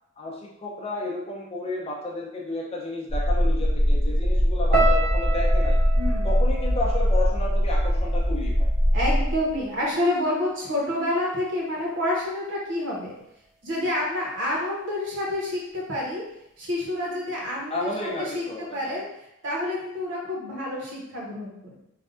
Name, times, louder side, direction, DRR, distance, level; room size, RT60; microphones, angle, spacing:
voice 1, 0.2-5.8 6.2-8.7 17.7-19.0, left 2 dB, 30° left, -2 dB, 0.5 m, -32 dB
sound 1, 3.1-9.6, equal, 90° right, 1.0 m, -22 dB
sound 2, 4.7-8.9 9.2-10.0 10.6-10.8, right 2 dB, 45° right, 0.5 m, -31 dB
voice 2, 6.0-6.3 8.9-13.1 13.6-16.2 16.6-21.8, left 1 dB, 65° right, -3 dB, 0.9 m, -28 dB
3.3 x 2.2 x 2.4 m, 0.79 s
head